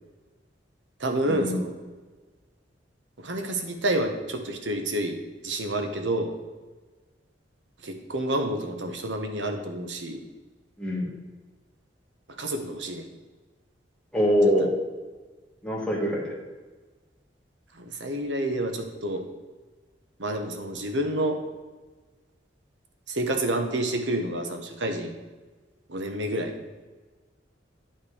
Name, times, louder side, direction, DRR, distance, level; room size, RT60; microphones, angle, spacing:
voice 1, 1.0-1.7 3.2-5.2 5.4-6.3 7.8-10.2 12.4-13.1 14.6-14.7 17.7-19.2 20.2-21.4 23.1-25.1 25.9-26.6, right 1 dB, 85° right, 5 dB, 1.2 m, -29 dB
voice 2, 14.1-14.7 15.6-16.3, equal, 5° left, -4 dB, 1.9 m, -24 dB
9.0 x 5.7 x 5.0 m, 1.3 s
head